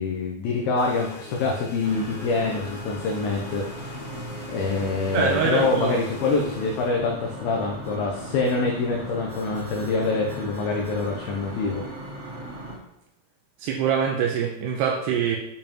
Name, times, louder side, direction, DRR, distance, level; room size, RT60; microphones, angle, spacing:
voice 1, 0.0-4.1 4.5-11.8, left 3 dB, 90° left, 0 dB, 2.1 m, -25 dB
sound 1, 0.8-6.9, left 2 dB, 70° left, 2.3 m, -43 dB
sound 2, 1.8-12.8, right 1 dB, 25° right, 2.0 m, -38 dB
voice 2, 5.1-5.9 13.6-15.4, right 7 dB, 90° right, 1 dB, 2.4 m, -24 dB
9.1 x 5.3 x 2.9 m, 0.87 s
omnidirectional pair, 5.4 m